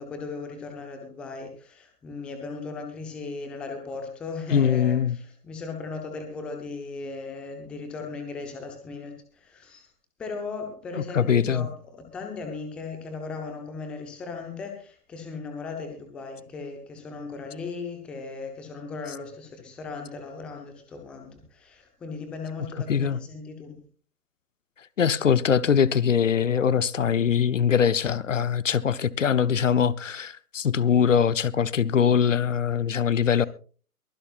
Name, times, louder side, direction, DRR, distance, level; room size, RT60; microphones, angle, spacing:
voice 1, 0.0-9.9 10.2-23.8 33.3-33.5, left 4 dB, ahead, 0.7 m, -37 dB
voice 2, 4.5-5.2 10.9-11.7 22.9-23.2 25.0-33.5, left 7 dB, 55° left, 0.8 m, -22 dB
23.0 x 11.0 x 2.4 m
figure-of-eight pair, 140°, 46 cm